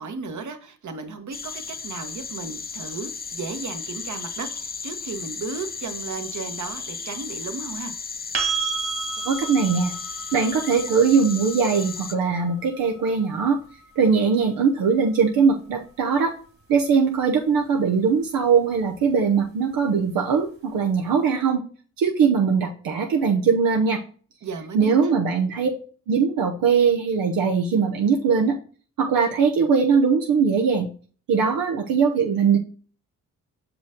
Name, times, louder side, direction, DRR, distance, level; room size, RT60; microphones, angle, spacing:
voice 1, 0.0-7.9 24.4-25.1, right 4 dB, 60° right, 7 dB, 1.3 m, -35 dB
sound 1, 1.3-12.2, left 5 dB, 25° left, 0.7 m, -35 dB
sound 2, 8.3-16.2 19.0-19.1, right 5 dB, 40° right, 2.0 m, -34 dB
voice 2, 9.3-9.9 10.3-13.6 14.0-16.3 16.7-21.6 22.0-24.0 24.7-25.7 26.1-28.6 29.0-30.9 31.3-32.6, right 5 dB, 80° right, 1 dB, 0.9 m, -21 dB
6.2 x 5.1 x 3.6 m, 0.41 s
supercardioid pair, 60°, 34 cm